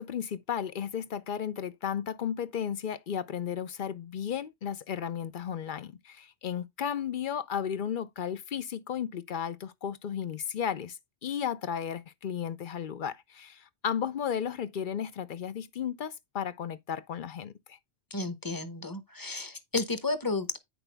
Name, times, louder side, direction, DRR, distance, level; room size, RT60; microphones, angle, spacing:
voice 1, 0.0-11.0 11.2-17.8, left 8 dB, 55° left, 0.7 m, -34 dB
voice 2, 18.1-20.6, left 3 dB, 20° left, 0.9 m, -32 dB
9.0 x 6.1 x 3.4 m
omnidirectional pair, 1.1 m